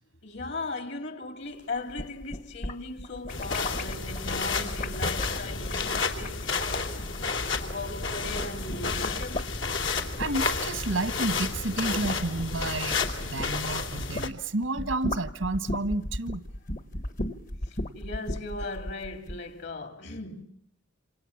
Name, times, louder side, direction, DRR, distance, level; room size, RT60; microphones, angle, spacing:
voice 1, 0.2-7.1 7.6-9.5 17.9-20.4, left 2 dB, 60° left, 2.8 m, -38 dB
sound 1, 1.8-8.0 8.3-14.3 14.6-19.4, left 1 dB, 45° left, 1.3 m, -36 dB
sound 2, 3.3-14.3, left 4 dB, 80° left, 3.0 m, -31 dB
voice 2, 10.2-16.4, right 2 dB, 85° right, 1.4 m, -31 dB
28.0 x 26.5 x 7.3 m
head